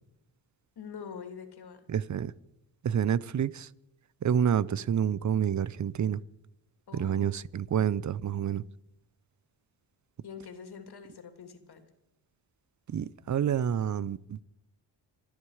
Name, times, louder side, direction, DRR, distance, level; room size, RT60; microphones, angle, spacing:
voice 1, 0.8-1.8 6.9-7.4 10.2-11.9, left 6 dB, 55° left, 2.9 m, -45 dB
voice 2, 1.9-2.3 2.8-3.7 4.2-6.2 6.9-8.6 12.9-14.4, right 8 dB, 40° right, 0.7 m, -28 dB
27.0 x 10.0 x 4.9 m
cardioid pair, 75°, 45 cm